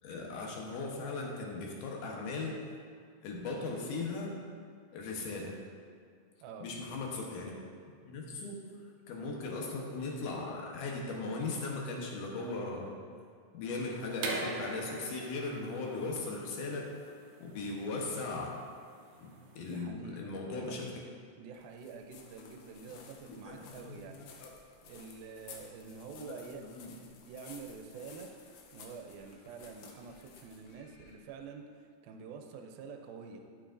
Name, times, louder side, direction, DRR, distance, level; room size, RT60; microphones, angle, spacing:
voice 1, 0.0-2.6 3.2-4.4 4.9-5.6 6.6-7.6 8.0-8.7 9.1-13.0 13.5-17.0 17.4-18.7 19.2-20.9 23.3-24.0 24.4-24.5 26.2-27.0, left 3 dB, 70° left, -1 dB, 2.4 m, -38 dB
sound 1, 14.2-19.8, right 3 dB, 65° right, 1.9 m, -42 dB
voice 2, 19.5-21.0 21.4-24.5 24.9-26.6 27.3-28.3 28.7-33.5, right 5 dB, 85° right, 4 dB, 2.5 m, -48 dB
sound 2, 21.5-31.4, left 5 dB, 85° left, 2.6 m, -55 dB
11.5 x 7.3 x 2.6 m, 2.1 s
omnidirectional pair, 4.1 m